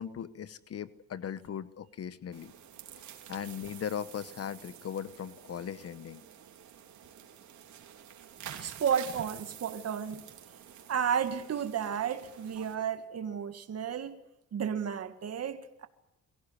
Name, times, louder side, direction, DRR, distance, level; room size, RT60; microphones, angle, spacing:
voice 1, 0.0-2.5 3.3-6.2, left 8 dB, 55° left, 1.0 m, -38 dB
sound 1, 2.3-12.7, right 9 dB, 70° right, 3.4 m, -49 dB
voice 2, 8.4-10.2 10.9-14.2 14.5-15.9, right 8 dB, 55° right, 2.0 m, -32 dB
23.0 x 16.0 x 9.7 m
cardioid pair, 90°, 30 cm